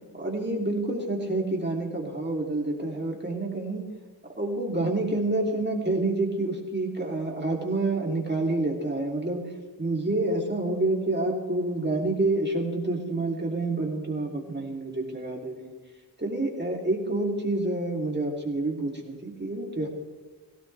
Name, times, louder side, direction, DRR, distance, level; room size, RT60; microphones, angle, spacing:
voice 1, 0.1-3.8 4.4-9.4 9.8-15.7 16.2-19.9, right 2 dB, 25° right, -1 dB, 3.4 m, -28 dB
17.0 x 17.0 x 3.5 m, 1.3 s
wide cardioid pair, 55°, 45 cm